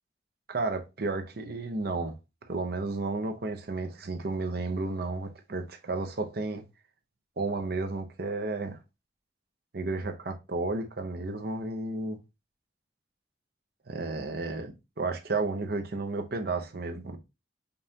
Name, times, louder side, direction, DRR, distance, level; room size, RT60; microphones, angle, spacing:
voice 1, 0.5-2.2 2.5-6.6 7.4-8.8 9.7-12.2 13.9-17.2, right 3 dB, 60° right, 0.7 m, -32 dB
5.3 x 2.5 x 2.7 m
head